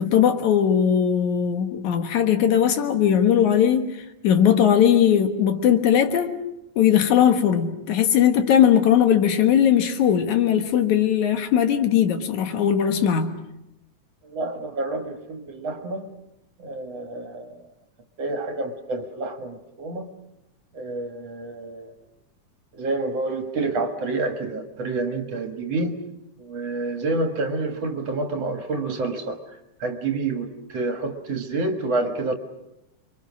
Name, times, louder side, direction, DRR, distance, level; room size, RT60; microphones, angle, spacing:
voice 1, 0.0-4.0 4.2-6.4 6.8-13.4, left 9 dB, 70° left, 2.8 m, -19 dB
voice 2, 14.2-16.1 16.6-17.6 18.2-20.1 20.7-21.9 22.7-26.0 26.4-29.4 29.8-32.3, right 3 dB, 55° right, 2.6 m, -28 dB
30.0 x 23.5 x 6.3 m
omnidirectional pair, 3.6 m